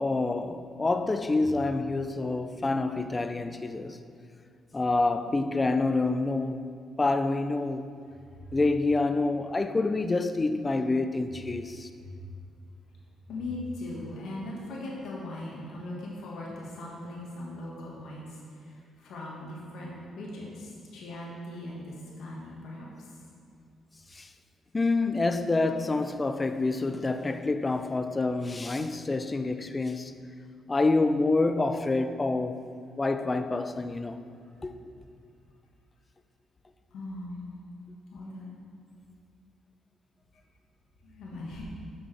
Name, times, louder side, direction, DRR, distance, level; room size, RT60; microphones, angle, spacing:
voice 1, 0.0-4.0 4.7-6.6 7.0-7.9 8.5-11.9 24.1-24.3 24.7-30.2 30.7-32.7 33.0-34.2 34.6-34.7, left 3 dB, 25° left, 0.4 m, -27 dB
voice 2, 13.3-22.9 34.5-34.6 36.9-37.6 38.1-38.6 41.0-41.7, left 1 dB, 75° left, 1.6 m, -39 dB
9.0 x 6.1 x 3.4 m
cardioid pair, 90°, 0 cm